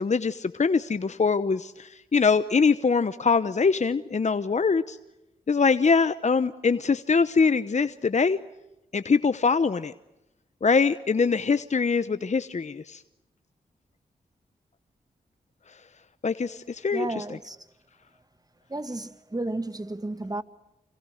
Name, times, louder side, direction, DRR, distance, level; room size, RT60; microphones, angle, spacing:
voice 1, 0.0-5.0 5.5-8.4 8.9-9.9 10.6-13.0 16.2-17.2, left 5 dB, 45° left, 1.0 m, -23 dB
voice 2, 16.9-17.6 18.7-20.4, right 2 dB, 25° right, 1.9 m, -32 dB
29.0 x 26.5 x 6.5 m
cardioid pair, 40°, 16 cm